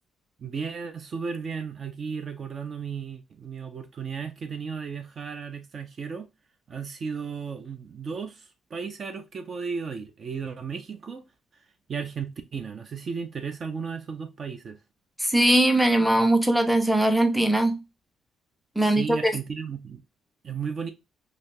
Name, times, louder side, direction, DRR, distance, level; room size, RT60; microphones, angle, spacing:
voice 1, 0.4-6.3 6.7-11.2 11.9-14.8 18.8-20.0 20.4-20.9, right 6 dB, 50° right, 0.5 m, -34 dB
voice 2, 15.2-17.8 18.8-19.3, right 1 dB, ahead, 0.7 m, -21 dB
3.3 x 2.5 x 2.6 m
cardioid pair, 90°, 0 cm